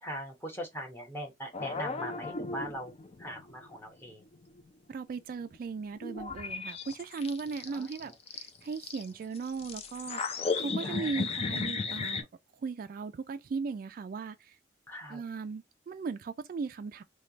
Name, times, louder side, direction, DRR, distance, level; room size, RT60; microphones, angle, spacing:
voice 1, 0.0-2.9 3.2-4.2 7.7-8.1 10.8-11.1 14.9-15.2, equal, 15° left, 1.0 m, -40 dB
sound 1, 1.5-3.8 4.0-4.6 5.6-5.7 6.0-9.1 9.4-12.2, left 4 dB, 35° left, 0.5 m, -35 dB
voice 2, 4.9-12.3 12.5-14.6 15.1-17.0, right 5 dB, 50° right, 0.3 m, -37 dB
3.2 x 2.3 x 3.9 m
head